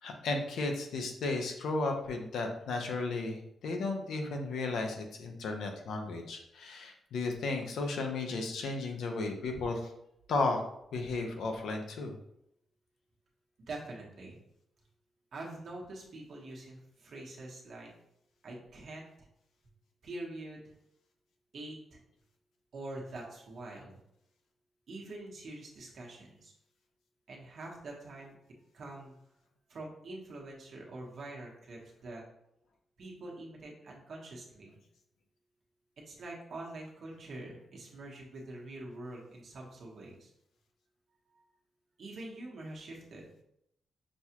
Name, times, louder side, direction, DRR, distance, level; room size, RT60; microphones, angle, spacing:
voice 1, 0.0-9.9 10.3-10.6 10.9-12.2, left 3 dB, 85° left, 3 dB, 0.7 m, -34 dB
voice 2, 13.7-14.4 15.3-17.9 18.4-19.3 20.0-20.7 21.5-22.0 22.7-24.0 24.9-26.5 27.3-28.4 28.7-29.2 29.7-32.2 33.0-34.8 36.1-40.3 41.3-41.4 42.0-43.3, right 2 dB, 60° right, -2 dB, 1.1 m, -45 dB
6.1 x 2.4 x 2.9 m, 0.77 s
wide cardioid pair, 135°, 0 cm